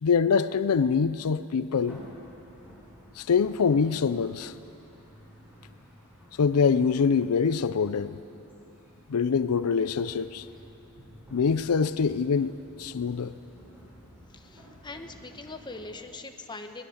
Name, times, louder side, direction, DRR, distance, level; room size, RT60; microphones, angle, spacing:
voice 1, 0.0-2.0 3.2-4.5 6.4-8.2 9.1-10.5 11.3-12.5 12.8-13.3, left 5 dB, 80° left, 0.5 m, -24 dB
sound 1, 1.7-15.9, equal, 10° right, 6.4 m, -52 dB
voice 2, 14.3-16.8, left 3 dB, 20° left, 1.1 m, -42 dB
22.5 x 19.0 x 6.5 m
head